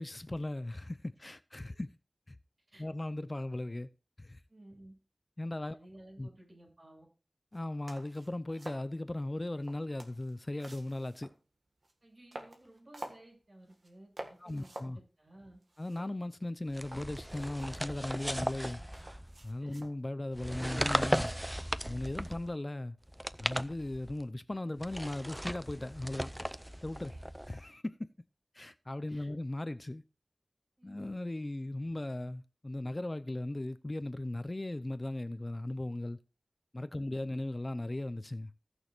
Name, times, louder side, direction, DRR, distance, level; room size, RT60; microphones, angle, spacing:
voice 1, 0.0-1.9 2.3-2.4 2.8-3.9 4.2-4.4 5.4-5.8 6.2-6.3 7.5-11.3 14.4-15.0 15.8-18.8 19.4-21.3 21.9-23.0 23.4-26.4 26.8-27.1 27.5-28.1 28.5-30.0 30.8-36.2 36.7-38.5, left 1 dB, 40° left, 0.6 m, -37 dB
voice 2, 4.5-4.9 5.7-7.1 12.0-15.6 19.6-19.8 27.1-27.2 29.1-29.3 30.8-30.9 36.9-37.0, right 1 dB, 60° right, 6.6 m, -56 dB
sound 1, 7.5-7.6 7.9-8.9 9.5-11.4 11.8-11.9 12.3-13.3 13.7-13.9 14.2-15.0 15.3-15.4 15.6-16.5 16.9-18.2 18.6-20.0 21.3-21.6, right 2 dB, 85° right, 1.7 m, -49 dB
sound 2, 16.7-19.5 20.3-22.5 23.1-24.2 24.8-27.6, equal, 10° right, 0.5 m, -37 dB
17.5 x 6.3 x 2.5 m
wide cardioid pair, 55°, 0 cm